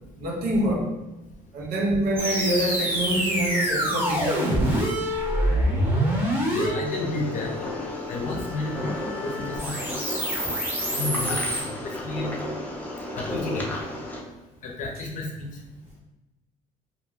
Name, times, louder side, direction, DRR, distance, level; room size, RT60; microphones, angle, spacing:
voice 1, 0.2-1.0 1.5-4.8, right 1 dB, 75° right, 0 dB, 0.7 m, -26 dB
sound 1, 2.2-11.6, equal, 15° right, 0.9 m, -27 dB
voice 2, 6.5-7.5 8.1-9.8 10.9-11.4 11.8-12.3 13.1-13.6 14.6-15.5, left 2 dB, 55° left, 0 dB, 0.6 m, -31 dB
sound 2, 6.8-14.2, left 1 dB, 10° left, 0.5 m, -34 dB
2.3 x 2.1 x 3.3 m, 1.0 s
cardioid pair, 115°, 16 cm